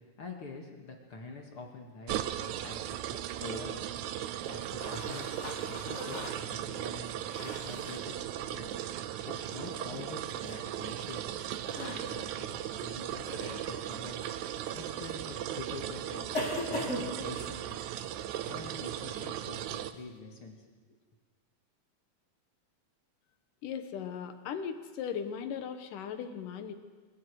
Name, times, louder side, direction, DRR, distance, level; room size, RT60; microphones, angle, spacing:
voice 1, 0.2-3.9 4.5-5.3 5.8-7.1 7.4-8.7 9.2-11.3 11.8-14.3 14.7-17.8 18.4-20.6 20.9-21.0, left 3 dB, 45° left, 2 dB, 2.3 m, -46 dB
sound 1, 2.1-19.9, right 11 dB, 80° right, 1.7 m, -37 dB
sound 2, 4.8-8.0 10.4-10.6 11.6-12.0 13.3-13.7 14.6-14.7 16.3-17.5, left 1 dB, 20° left, 2.7 m, -39 dB
voice 2, 23.6-26.7, left 7 dB, 70° left, 8 dB, 2.6 m, -38 dB
24.5 x 22.5 x 4.8 m, 1.4 s
omnidirectional pair, 4.2 m